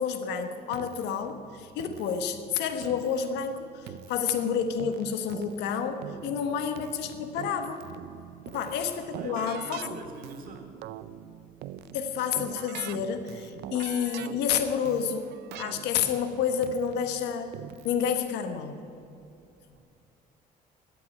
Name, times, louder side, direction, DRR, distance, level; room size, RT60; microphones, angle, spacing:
voice 1, 0.0-7.8 8.5-10.0 11.9-17.5 17.8-18.8, left 7 dB, 90° left, 8 dB, 1.3 m, -29 dB
Keyboard (musical), 0.7-18.1, right 11 dB, 80° right, 0.6 m, -44 dB
voice 2, 6.2-6.7 8.5-8.9 9.1-10.7 19.4-19.8, right 3 dB, 55° right, 2 dB, 2.9 m, -47 dB
13.0 x 8.5 x 9.8 m, 2.5 s
cardioid pair, 110°, 17 cm